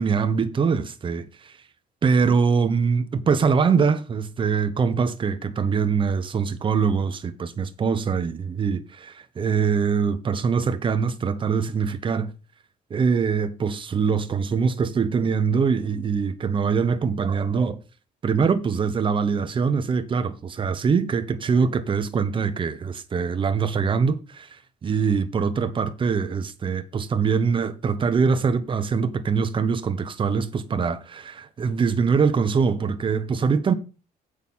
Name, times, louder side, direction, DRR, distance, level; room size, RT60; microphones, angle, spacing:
voice 1, 0.0-1.5 2.0-12.3 12.9-17.8 18.2-24.5 24.8-33.7, right 5 dB, 30° right, 1.1 m, -23 dB
8.1 x 6.6 x 5.6 m
cardioid pair, 140°, 16 cm